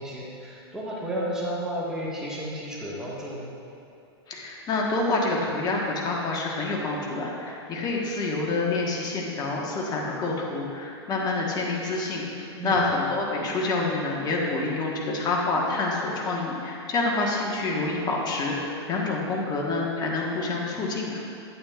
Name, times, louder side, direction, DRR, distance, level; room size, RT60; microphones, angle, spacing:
voice 1, 0.0-3.5 12.6-12.9, equal, 5° right, -7 dB, 1.7 m, -32 dB
voice 2, 4.3-21.2, left 3 dB, 30° left, -2 dB, 1.4 m, -27 dB
8.7 x 8.6 x 2.5 m, 2.8 s
hypercardioid pair, 110°, 14 cm